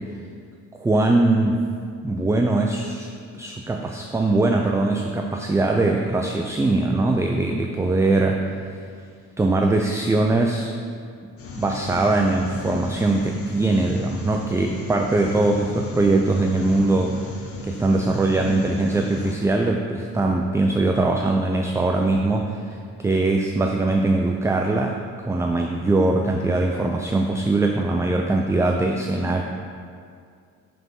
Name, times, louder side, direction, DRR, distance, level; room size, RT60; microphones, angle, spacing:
voice 1, 0.7-1.6 2.0-8.5 9.4-10.7 11.6-17.2 17.6-29.4, right 2 dB, 10° right, 2 dB, 0.3 m, -21 dB
sound 1, 11.4-19.4, left 3 dB, 50° left, 0.9 m, -35 dB
5.9 x 3.5 x 5.5 m, 2.2 s
cardioid pair, 90°, 30 cm